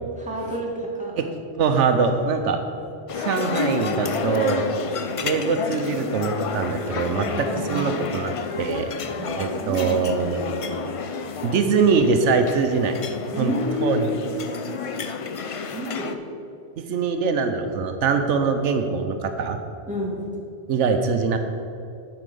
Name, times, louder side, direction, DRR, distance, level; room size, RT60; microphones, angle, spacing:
voice 1, 0.1-1.1 7.2-8.0 9.2-9.3 9.6-10.6 13.3-14.0 15.7-16.1 19.8-20.2, equal, 5° right, -4 dB, 1.8 m, -29 dB
voice 2, 1.6-2.6 3.1-4.7 5.2-8.9 9.4-10.5 11.4-13.0 13.4-13.5 13.8-14.1 16.9-19.6 20.7-21.4, right 5 dB, 80° right, 7 dB, 1.0 m, -23 dB
sound 1, 3.1-16.1, left 5 dB, 60° left, 0.3 m, -30 dB
9.7 x 4.9 x 6.8 m, 2.5 s
omnidirectional pair, 1.2 m